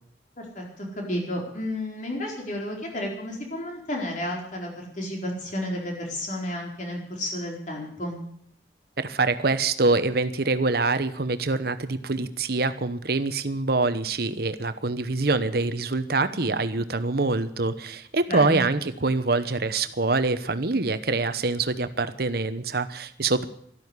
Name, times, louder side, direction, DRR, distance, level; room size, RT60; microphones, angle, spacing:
voice 1, 0.4-8.2 18.3-18.6, left 1 dB, 45° left, 0 dB, 4.4 m, -32 dB
voice 2, 9.0-23.4, right 3 dB, 60° right, 12 dB, 1.0 m, -25 dB
12.5 x 12.0 x 8.2 m, 0.66 s
head